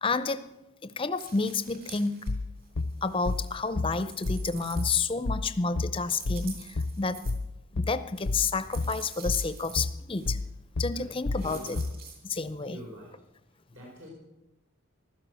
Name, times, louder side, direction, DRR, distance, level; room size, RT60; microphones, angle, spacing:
voice 1, 0.0-0.5 0.8-2.2 3.0-7.3 7.7-10.4 10.8-11.8 12.2-12.8, left 4 dB, 25° left, 13 dB, 0.6 m, -30 dB
sound 1, 1.2-2.3 2.6-5.3 6.1-7.3 8.1-9.8 10.2-10.4 11.3-12.2, right 6 dB, 45° right, 3.4 m, -47 dB
sound 2, 2.3-12.1, left 3 dB, 65° left, 0.6 m, -31 dB
voice 2, 10.9-11.8 12.6-13.1 13.5-14.1, equal, 70° right, -4 dB, 4.8 m, -46 dB
15.5 x 12.5 x 6.3 m, 0.96 s
head